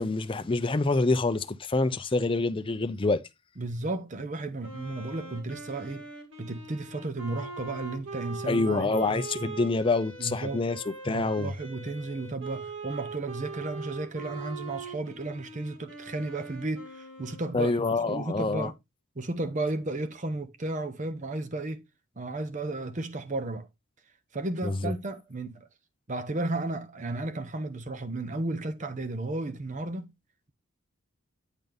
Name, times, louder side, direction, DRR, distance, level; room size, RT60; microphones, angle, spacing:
voice 1, 0.0-3.2 8.5-11.5 17.5-18.7 24.6-24.9, left 3 dB, 25° left, 0.5 m, -26 dB
voice 2, 3.6-6.1 6.4-8.9 10.2-10.7 11.1-17.7 18.1-18.7 19.2-21.8 22.2-23.7 24.3-25.7 26.1-30.1, right 2 dB, 35° right, 0.8 m, -33 dB
Wind instrument woodwind instrument, 4.6-18.0, right 3 dB, 65° right, 2.2 m, -42 dB
9.1 x 3.9 x 3.4 m
head